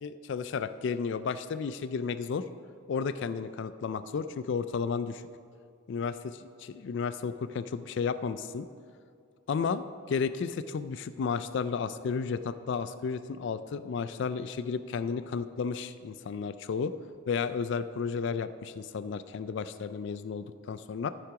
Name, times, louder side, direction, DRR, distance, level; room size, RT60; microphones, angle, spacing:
voice 1, 0.0-2.4 2.9-5.2 5.9-8.7 9.5-16.9 17.3-21.1, left 5 dB, 60° left, 12 dB, 0.3 m, -33 dB
14.0 x 5.8 x 4.8 m, 2.4 s
head